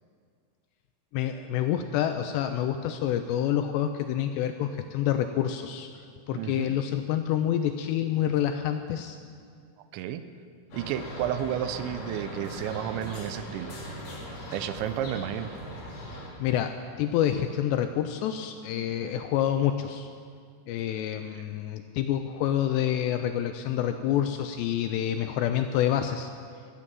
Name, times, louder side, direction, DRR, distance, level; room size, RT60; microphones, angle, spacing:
voice 1, 1.1-9.2 16.4-20.1 20.7-26.3, left 10 dB, 85° left, 7 dB, 2.5 m, -28 dB
voice 2, 6.3-6.8 9.9-10.2 10.7-13.8 14.5-15.5 19.0-19.1 21.3-21.4, right 10 dB, 80° right, 11 dB, 2.8 m, -32 dB
sound 1, 10.7-16.3, equal, 50° left, 3.6 m, -39 dB
15.0 x 7.3 x 9.2 m, 2.1 s
omnidirectional pair, 5.4 m